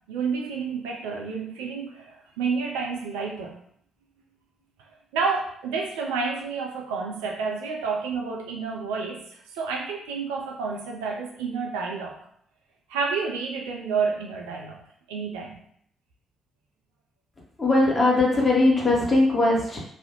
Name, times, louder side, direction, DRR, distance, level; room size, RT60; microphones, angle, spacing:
voice 1, 0.1-3.5 5.1-12.2 12.9-14.8 15.1-15.6, right 5 dB, 75° right, 0 dB, 0.4 m, -30 dB
voice 2, 17.6-19.8, left 2 dB, 30° left, -2 dB, 0.9 m, -20 dB
2.4 x 2.0 x 2.9 m, 0.67 s
figure-of-eight pair, 45°, 0 cm